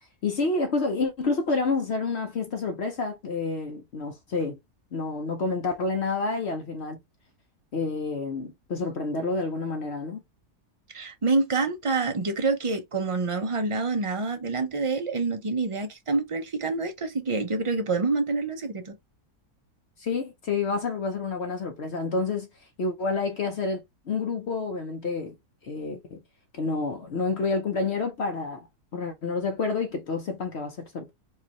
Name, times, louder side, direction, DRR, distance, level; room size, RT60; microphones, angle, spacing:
voice 1, 0.2-4.6 4.9-7.0 7.7-10.2 20.0-22.5 22.8-25.3 25.6-26.2 26.5-28.7 28.9-31.1, left 3 dB, 55° left, 0.8 m, -29 dB
voice 2, 10.9-18.9, right 3 dB, 35° right, 0.5 m, -27 dB
4.6 x 2.4 x 2.9 m
omnidirectional pair, 1.7 m